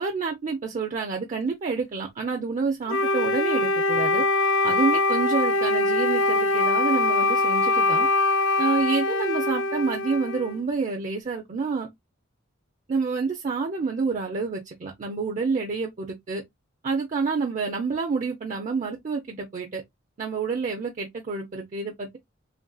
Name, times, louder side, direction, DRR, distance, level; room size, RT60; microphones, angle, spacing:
voice 1, 0.0-4.2 4.6-8.1 8.6-11.9 12.9-16.4 16.8-19.8 20.2-22.2, right 4 dB, 40° right, 0.4 m, -28 dB
Wind instrument woodwind instrument, 2.9-10.6, left 2 dB, 65° left, 0.4 m, -23 dB
3.1 x 2.5 x 2.3 m
head